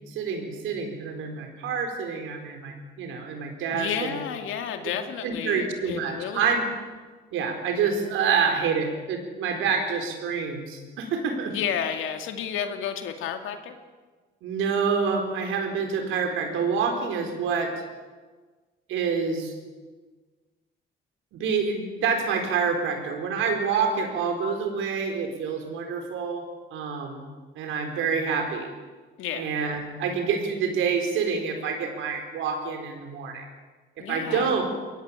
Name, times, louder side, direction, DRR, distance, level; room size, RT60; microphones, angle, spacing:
voice 1, 0.1-4.2 5.2-6.6 7.3-11.6 14.4-17.7 18.9-19.5 21.3-26.4 26.7-28.7 29.3-33.5 34.1-34.6, right 5 dB, 90° right, 4 dB, 4.5 m, -27 dB
voice 2, 3.7-6.5 11.5-13.8 29.2-29.8 34.0-34.6, left 8 dB, 85° left, 6 dB, 2.3 m, -31 dB
23.5 x 18.5 x 8.4 m, 1.4 s
cardioid pair, 90°, 20 cm